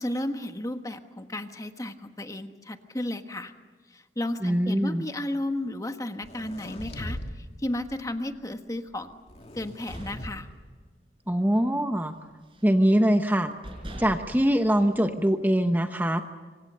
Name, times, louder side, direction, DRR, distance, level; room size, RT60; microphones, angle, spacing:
voice 1, 0.0-3.5 3.9-9.2 9.5-10.5, left 1 dB, 20° left, 7 dB, 1.3 m, -33 dB
voice 2, 4.4-5.0 11.3-12.1 12.6-13.5 14.0-16.2, equal, 10° right, 6 dB, 1.0 m, -23 dB
sound 1, 6.2-7.3 7.7-8.0 9.3-10.3, equal, 35° left, 2.5 m, -39 dB
sound 2, 9.5-11.1 11.4-11.7 12.0-12.8 13.3-13.4 13.6-15.5, equal, 30° right, 6.0 m, -43 dB
26.5 x 25.0 x 6.8 m, 1.5 s
head